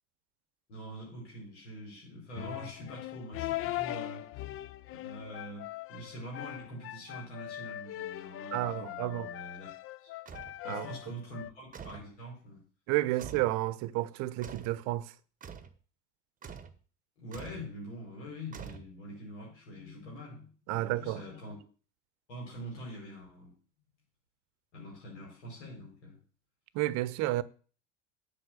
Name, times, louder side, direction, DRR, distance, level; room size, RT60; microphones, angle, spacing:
voice 1, 0.7-4.5 4.9-9.7 10.0-10.1 10.6-12.6 17.2-21.6 22.3-23.5 24.7-26.2, equal, 75° left, 4.8 m, -45 dB
sound 1, 2.3-11.5, left 15 dB, 40° left, 0.6 m, -40 dB
voice 2, 8.5-9.3 10.6-10.9 12.9-15.1 20.7-21.2 26.7-27.4, right 17 dB, 55° right, 0.8 m, -31 dB
sound 2, 10.3-10.6 11.7-12.1 13.2-13.6 14.4-14.8 15.4-15.8 16.4-16.8 17.3-17.7 18.5-19.2, right 7 dB, 25° right, 1.1 m, -45 dB
7.9 x 5.8 x 7.7 m
hypercardioid pair, 80°, 34 cm